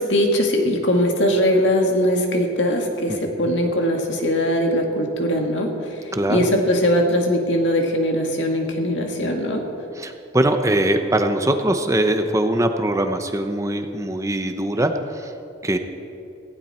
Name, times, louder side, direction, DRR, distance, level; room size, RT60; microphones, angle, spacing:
voice 1, 0.0-9.7, equal, 65° left, 2 dB, 2.1 m, -21 dB
voice 2, 6.1-6.5 10.0-15.3 15.6-15.8, right 1 dB, 15° right, 6 dB, 0.7 m, -21 dB
18.0 x 15.5 x 4.3 m, 2.7 s
head